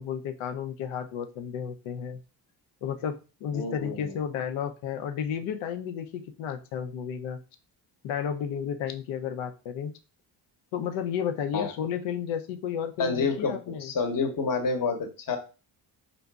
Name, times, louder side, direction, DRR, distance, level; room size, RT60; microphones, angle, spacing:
voice 1, 0.0-2.2 2.8-7.4 8.0-9.9 10.7-13.9, left 8 dB, 90° left, 8 dB, 0.5 m, -32 dB
voice 2, 3.5-4.2 11.5-11.7 13.0-15.4, left 4 dB, 45° left, 6 dB, 0.9 m, -29 dB
3.9 x 2.6 x 2.2 m, 0.33 s
supercardioid pair, 55°, 46 cm